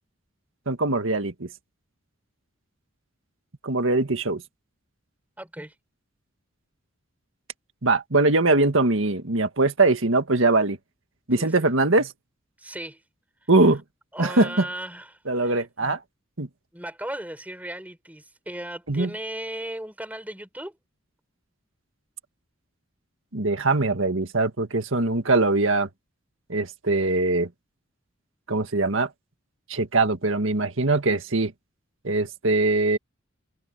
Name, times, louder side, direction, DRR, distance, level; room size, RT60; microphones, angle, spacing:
voice 1, 0.7-1.5 3.6-4.4 7.8-10.8 11.3-12.1 13.5-13.8 14.2-14.7 15.3-16.0 16.4-16.5 18.9-19.1 23.3-25.9 26.5-27.5 28.5-29.1 29.7-31.5 32.0-33.0, right 2 dB, 70° right, 1.8 m, -22 dB
voice 2, 5.4-5.7 11.4-11.6 12.6-13.0 14.1-16.0 16.7-20.8, right 1 dB, 5° right, 6.8 m, -36 dB
head